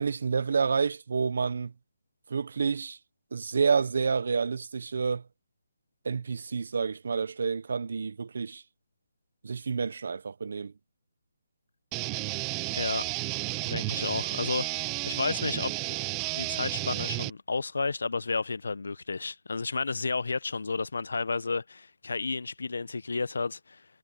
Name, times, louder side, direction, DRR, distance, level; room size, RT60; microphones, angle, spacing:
voice 1, 0.0-1.7 2.3-3.0 3.3-5.2 6.0-8.6 9.4-10.7, right 5 dB, 50° right, 0.8 m, -29 dB
sound 1, 11.9-17.3, right 25 dB, 10° right, 0.4 m, -32 dB
voice 2, 12.7-13.1 13.6-15.7 16.3-23.9, left 4 dB, 75° left, 0.8 m, -32 dB
hypercardioid pair, 180°, 0 cm